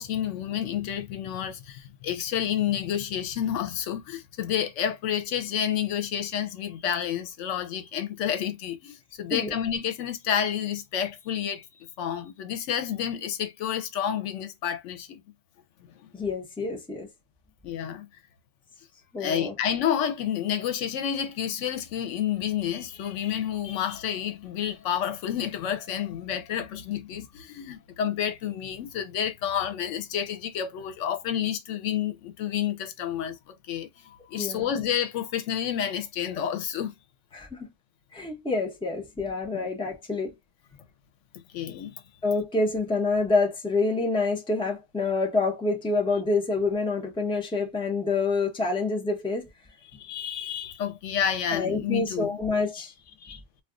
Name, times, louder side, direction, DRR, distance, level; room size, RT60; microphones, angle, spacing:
voice 1, 0.0-11.6 12.0-15.2 16.0-16.1 17.6-18.1 19.2-36.9 39.5-39.7 41.5-42.0 50.0-52.4 53.2-53.4, left 9 dB, 85° left, 0.9 m, -30 dB
voice 2, 16.1-17.1 19.1-19.5 34.4-34.7 37.3-37.7 38.1-40.3 42.2-49.5 51.5-52.9, left 3 dB, 5° left, 0.5 m, -27 dB
2.3 x 2.3 x 3.6 m
omnidirectional pair, 1.2 m